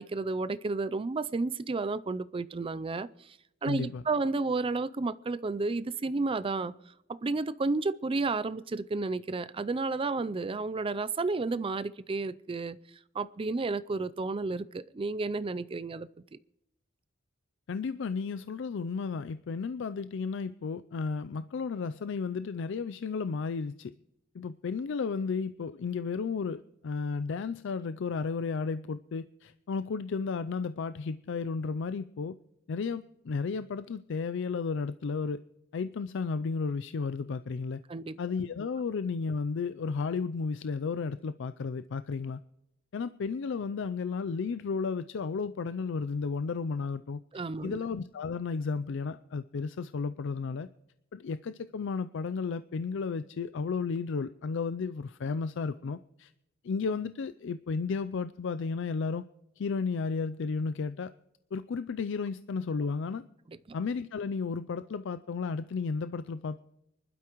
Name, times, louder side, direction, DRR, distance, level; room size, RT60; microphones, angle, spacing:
voice 1, 0.0-3.4 3.6-6.7 7.1-12.8 13.1-16.1 37.9-38.2 47.3-47.8 63.5-63.6, right 3 dB, 25° right, 0.4 m, -32 dB
voice 2, 3.6-4.0 17.7-23.9 24.3-32.3 32.7-35.4 35.7-37.8 38.2-42.4 42.9-47.2 47.6-50.7 51.1-56.3 56.6-59.2 59.6-61.1 61.5-63.2 63.7-66.6, left 5 dB, 65° left, 0.4 m, -33 dB
24.5 x 12.0 x 3.0 m
head